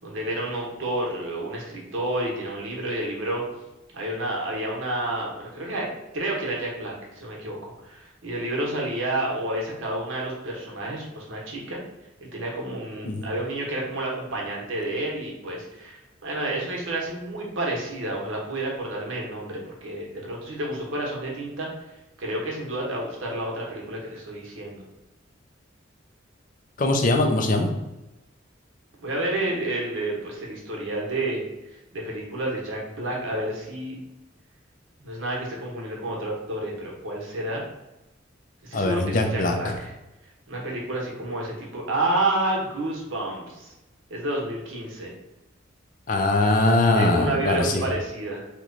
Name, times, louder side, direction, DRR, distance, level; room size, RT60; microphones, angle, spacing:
voice 1, 0.0-3.4 3.9-5.9 6.1-11.8 12.2-21.7 22.2-24.8 29.0-31.4 31.7-34.0 35.0-37.6 38.6-39.9 40.5-43.7 44.1-45.1 46.9-48.5, right 1 dB, 85° right, -2 dB, 1.0 m, -30 dB
voice 2, 26.8-27.7 38.7-39.7 46.1-47.8, left 2 dB, 40° left, 4 dB, 0.4 m, -21 dB
3.0 x 2.2 x 3.7 m, 1.0 s
head